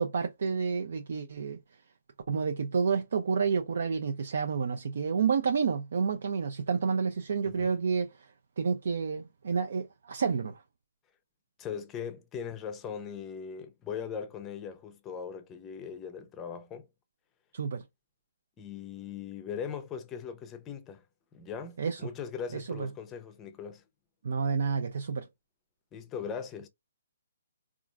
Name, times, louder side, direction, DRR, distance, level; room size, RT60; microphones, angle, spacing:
voice 1, 0.0-1.6 2.3-8.3 8.6-10.6 17.5-17.8 21.8-22.0 22.5-22.9 24.2-25.3, right 5 dB, 60° right, 0.4 m, -29 dB
voice 2, 11.6-16.9 18.6-21.0 21.3-23.8 25.9-26.7, left 7 dB, 20° left, 0.5 m, -39 dB
3.7 x 2.4 x 2.4 m
figure-of-eight pair, 135°, 0 cm